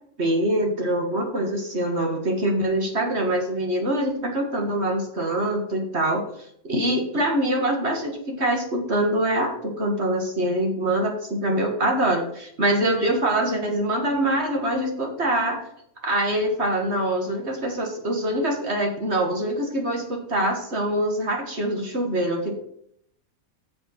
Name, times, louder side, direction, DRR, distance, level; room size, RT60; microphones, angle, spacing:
voice 1, 0.2-6.2 6.6-15.6 16.0-22.5, right 1 dB, 50° right, 2 dB, 2.0 m, -24 dB
8.2 x 6.8 x 5.9 m, 0.69 s
omnidirectional pair, 1.5 m